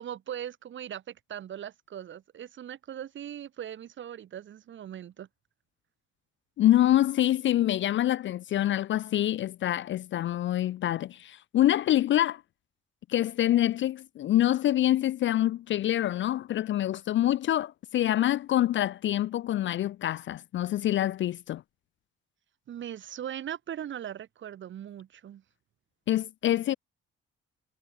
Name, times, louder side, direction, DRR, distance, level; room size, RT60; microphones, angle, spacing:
voice 1, 0.0-5.3 22.7-25.4, right 10 dB, 40° right, 0.6 m, -39 dB
voice 2, 6.6-12.4 13.1-21.6 26.1-26.7, left 13 dB, 40° left, 0.4 m, -26 dB
figure-of-eight pair, 45°, 32 cm